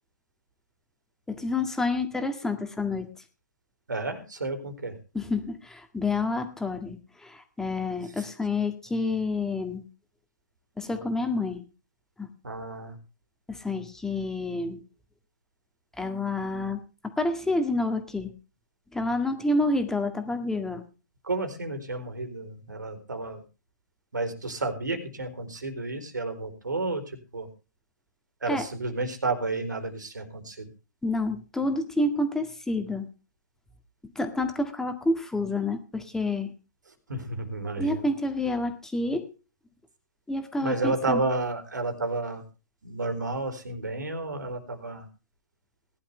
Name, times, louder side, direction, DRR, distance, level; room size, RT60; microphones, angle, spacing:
voice 1, 1.3-3.1 5.1-9.8 10.8-11.6 12.2-12.3 13.5-14.8 16.0-18.3 18.9-20.8 28.5-28.6 31.0-33.1 34.2-36.5 37.8-39.3 40.3-41.2, left 2 dB, 5° left, 6 dB, 1.9 m, -28 dB
voice 2, 3.9-5.0 12.4-13.0 21.2-23.4 24.1-27.5 28.4-30.7 37.1-38.1 40.6-42.4 42.8-45.1, right 3 dB, 85° right, 7 dB, 4.0 m, -31 dB
19.5 x 11.5 x 3.4 m, 0.33 s
hypercardioid pair, 130°, 10 cm